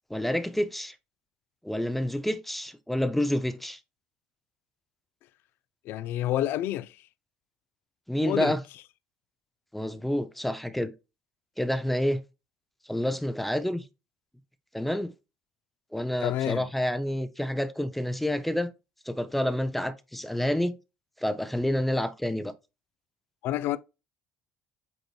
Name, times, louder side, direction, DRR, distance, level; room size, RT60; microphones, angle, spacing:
voice 1, 0.1-0.9 1.6-3.8 8.1-8.6 9.7-10.9 11.6-12.2 12.9-13.8 14.7-15.1 15.9-18.7 19.1-20.8 21.2-22.5, left 1 dB, 5° left, 0.5 m, -28 dB
voice 2, 5.9-7.0 8.2-8.6 16.2-16.7 23.4-23.8, left 13 dB, 70° left, 0.4 m, -28 dB
7.9 x 2.9 x 2.3 m
cardioid pair, 115°, 4 cm